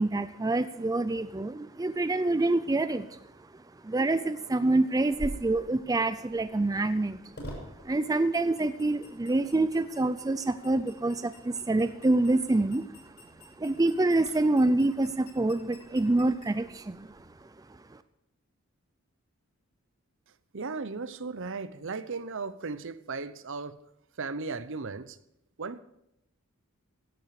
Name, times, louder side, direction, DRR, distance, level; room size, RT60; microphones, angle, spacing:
voice 1, 0.0-3.1 3.8-7.2 7.8-13.1 13.6-17.2, right 2 dB, 15° right, 12 dB, 0.4 m, -26 dB
sound 1, 5.1-17.3, equal, 50° left, 6.4 m, -48 dB
voice 2, 20.5-23.8 24.2-25.2 25.6-25.8, right 4 dB, 60° right, 14 dB, 0.8 m, -36 dB
16.0 x 11.0 x 4.9 m, 0.79 s
head